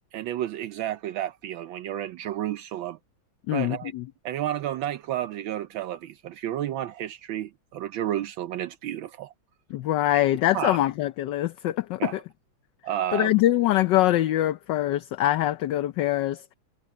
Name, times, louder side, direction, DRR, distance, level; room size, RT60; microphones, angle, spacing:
voice 1, 0.0-3.0 3.5-3.9 4.2-9.3 10.5-10.8 12.0-12.2 12.8-13.4, right 12 dB, 75° right, 1.4 m, -31 dB
voice 2, 3.5-4.0 9.7-12.2 13.1-16.5, left 14 dB, 70° left, 1.2 m, -24 dB
omnidirectional pair, 2.2 m